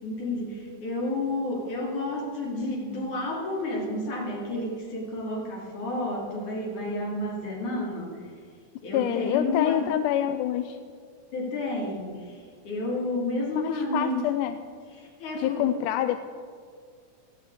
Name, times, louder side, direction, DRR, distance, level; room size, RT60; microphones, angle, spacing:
voice 1, 0.0-8.3 8.8-9.9 11.3-14.3 14.9-15.7, left 2 dB, 65° left, -3 dB, 4.5 m, -31 dB
voice 2, 8.9-10.8 13.6-14.6 15.3-16.2, left 11 dB, 80° left, 9 dB, 2.1 m, -26 dB
16.0 x 14.5 x 4.9 m, 2.1 s
omnidirectional pair, 3.8 m